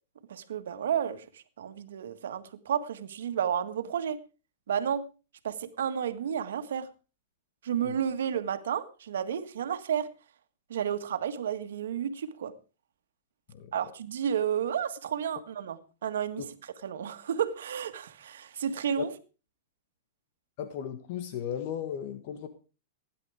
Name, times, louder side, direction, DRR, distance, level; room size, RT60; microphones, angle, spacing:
voice 1, 0.3-4.2 4.7-5.1 5.4-6.9 7.6-10.1 10.7-12.5 13.7-16.4 16.8-19.1, right 8 dB, 85° right, 1.7 m, -31 dB
voice 2, 20.6-22.5, left 9 dB, 50° left, 1.5 m, -36 dB
16.5 x 10.5 x 4.9 m
hypercardioid pair, 145°, 0 cm